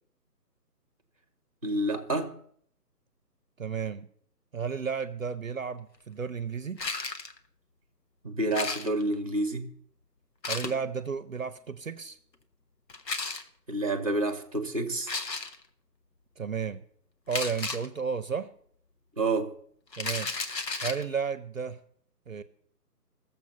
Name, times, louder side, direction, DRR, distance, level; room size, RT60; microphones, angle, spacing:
voice 1, 1.6-2.3 8.2-9.7 13.7-15.1 19.2-19.5, right 2 dB, 20° right, 0.8 m, -29 dB
voice 2, 3.6-4.1 4.5-6.8 10.5-12.2 16.4-16.8 17.3-18.5 20.0-20.3 20.8-21.8 22.3-22.4, right 6 dB, 55° right, 0.7 m, -33 dB
sound 1, 6.8-7.4 8.5-9.1 10.4-10.8 12.9-13.4 15.0-15.6 17.3-17.9 19.9-21.0, left 3 dB, 85° left, 1.3 m, -33 dB
15.5 x 7.2 x 5.7 m
figure-of-eight pair, 170°, 49 cm